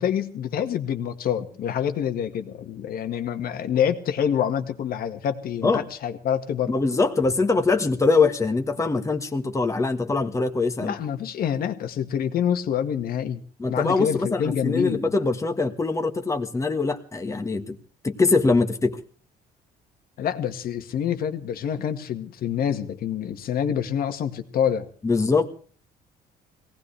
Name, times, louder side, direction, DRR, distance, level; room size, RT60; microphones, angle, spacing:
voice 1, 0.0-6.7 10.8-13.4 13.7-15.1 20.2-24.9, left 9 dB, 60° left, 7 dB, 1.8 m, -27 dB
voice 2, 6.7-10.9 13.6-17.8 18.0-19.0 25.0-25.5, left 3 dB, 20° left, 5 dB, 1.6 m, -23 dB
23.0 x 18.0 x 3.4 m, 0.42 s
cardioid pair, 110°, 17 cm